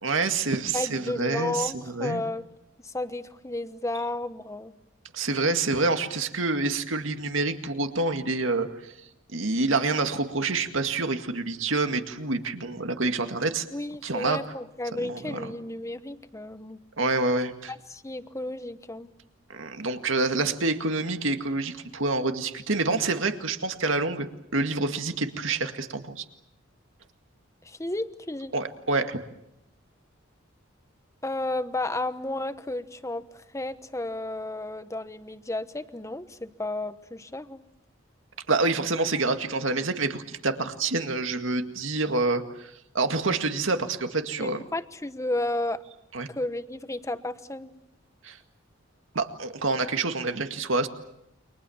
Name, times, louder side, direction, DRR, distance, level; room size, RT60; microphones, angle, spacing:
voice 1, 0.0-2.2 5.1-8.9 9.3-13.7 14.0-14.4 14.9-15.5 17.0-17.7 19.5-26.2 28.5-29.2 38.5-44.6 46.1-46.3 48.2-48.4 49.1-50.9, right 3 dB, 80° right, 7 dB, 2.0 m, -27 dB
voice 2, 0.7-2.5 2.8-4.7 13.7-16.8 17.7-19.1 27.6-28.5 31.2-37.6 44.4-45.8 46.3-47.7, left 2 dB, 15° left, 11 dB, 1.1 m, -32 dB
29.5 x 24.5 x 7.2 m, 0.82 s
head